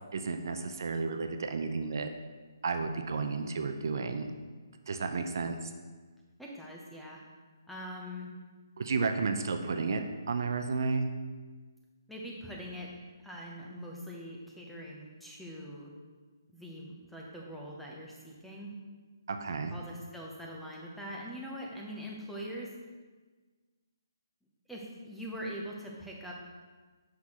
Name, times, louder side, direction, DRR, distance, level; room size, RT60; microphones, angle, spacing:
voice 1, 0.1-2.1 2.6-4.3 4.9-5.7 8.8-10.0 10.3-11.1 19.3-19.8, right 4 dB, 60° right, 6 dB, 0.5 m, -32 dB
voice 2, 5.1-5.5 6.4-7.2 7.7-8.3 12.1-12.9 13.2-15.9 16.5-18.7 19.7-22.7 24.7-26.3, equal, ahead, -3 dB, 0.7 m, -43 dB
5.9 x 5.7 x 3.0 m, 1.4 s
hypercardioid pair, 150°, 2 cm